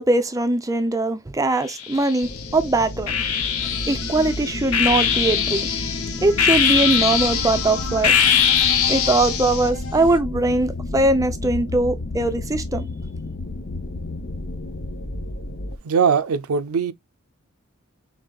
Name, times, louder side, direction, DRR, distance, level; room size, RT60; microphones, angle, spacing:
voice 1, 0.0-3.1 3.9-5.7 6.2-8.1 8.9-12.9, right 2 dB, 15° right, 0.5 m, -21 dB
sound 1, 1.7-2.4 3.1-9.7, left 8 dB, 85° left, 0.8 m, -22 dB
sound 2, 2.2-15.8, left 2 dB, 45° left, 0.6 m, -31 dB
sound 3, 3.6-10.2, left 5 dB, 65° left, 1.4 m, -37 dB
voice 2, 15.8-16.9, right 6 dB, 80° right, 0.4 m, -20 dB
5.0 x 3.3 x 2.3 m
head